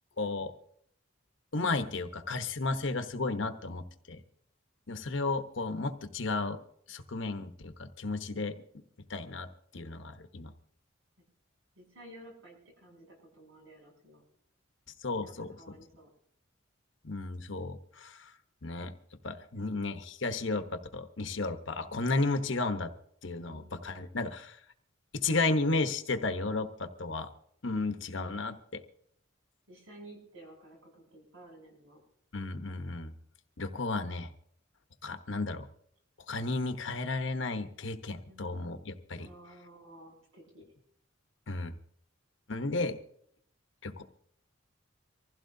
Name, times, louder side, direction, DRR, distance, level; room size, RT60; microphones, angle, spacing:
voice 1, 0.2-0.5 1.5-4.2 4.9-6.6 6.9-8.6 9.1-9.5 9.7-10.5 15.0-15.6 17.0-18.3 18.6-18.9 19.2-22.9 23.2-24.6 25.1-27.3 27.6-28.8 32.3-33.1 33.6-34.3 35.0-35.7 36.3-39.3 41.5-41.7 42.5-43.0 43.8-44.0, left 3 dB, 65° left, 8 dB, 1.0 m, -33 dB
voice 2, 11.8-14.2 15.2-16.1 19.5-20.0 23.3-23.7 29.7-32.0 38.3-38.6 39.2-40.6, right 1 dB, 80° right, -2 dB, 7.8 m, -53 dB
24.5 x 15.5 x 2.7 m, 0.68 s
head